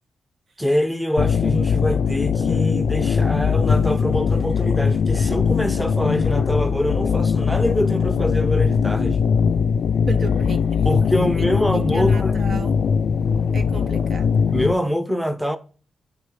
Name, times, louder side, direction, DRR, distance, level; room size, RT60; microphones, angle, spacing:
voice 1, 0.6-9.2 10.8-12.3 14.5-15.6, equal, ahead, 0.7 m, -24 dB
sound 1, 1.2-14.7, left 6 dB, 70° left, 0.3 m, -20 dB
voice 2, 10.1-10.9 11.2-12.8 13.5-14.3, right 4 dB, 50° right, 0.6 m, -33 dB
9.7 x 3.6 x 3.8 m
cardioid pair, 95°, 0 cm